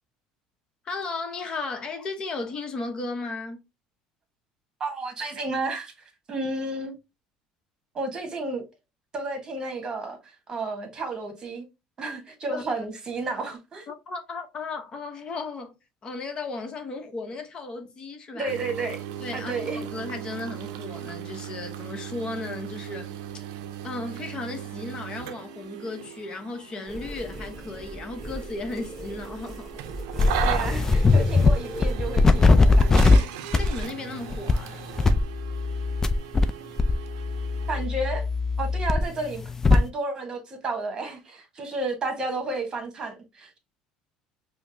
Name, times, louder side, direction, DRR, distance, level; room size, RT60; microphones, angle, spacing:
voice 1, 0.8-3.6 12.5-12.8 13.9-15.8 16.0-18.5 19.2-23.1 23.8-29.8 33.6-34.8, left 3 dB, 35° left, 0.8 m, -35 dB
voice 2, 4.8-5.9 6.3-6.9 7.9-8.6 9.1-10.2 10.5-11.7 12.0-13.9 18.3-19.0 19.3-19.8 30.4-33.3 37.7-38.2 38.6-39.4 39.7-43.6, right 2 dB, 30° right, 1.2 m, -32 dB
sound 1, 18.5-37.9, right 10 dB, 85° right, 0.5 m, -37 dB
sound 2, 26.9-31.9, equal, 5° right, 1.1 m, -38 dB
sound 3, 30.2-31.5 31.8-33.2 33.5-33.8 34.3-34.5 35.0-36.5 36.8-39.8, left 3 dB, 20° left, 0.4 m, -20 dB
5.1 x 2.1 x 2.6 m
supercardioid pair, 105°, 2 cm